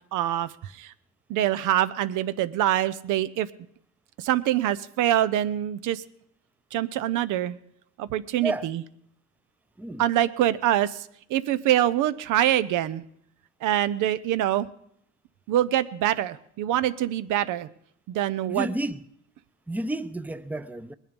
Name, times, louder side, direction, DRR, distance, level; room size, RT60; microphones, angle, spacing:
voice 1, 0.1-0.9 1.3-3.5 4.2-6.0 6.7-7.6 8.0-8.8 10.0-13.0 13.6-14.7 15.5-17.7 18.1-18.7, right 12 dB, 90° right, 0.6 m, -25 dB
voice 2, 18.5-19.0 19.7-21.0, right 1 dB, 5° right, 0.5 m, -31 dB
20.0 x 10.0 x 5.2 m
cardioid pair, 90°, 30 cm